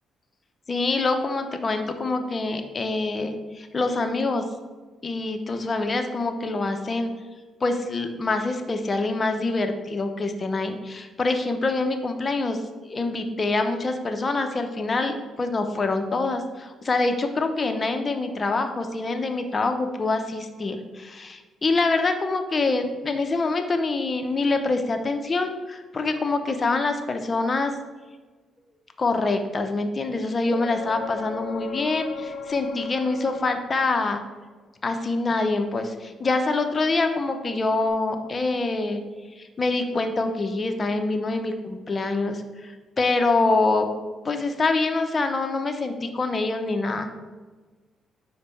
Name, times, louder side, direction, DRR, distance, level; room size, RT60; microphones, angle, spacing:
voice 1, 0.7-4.4 5.0-7.1 7.6-12.6 12.9-27.8 29.0-34.2 34.8-39.0 39.4-43.9 44.2-47.1, left 3 dB, 35° left, 6 dB, 0.7 m, -25 dB
sound 1, 30.4-34.2 37.9-38.0, left 5 dB, 85° left, 0.5 m, -37 dB
5.1 x 3.4 x 5.5 m, 1.3 s
cardioid pair, 90°, 0 cm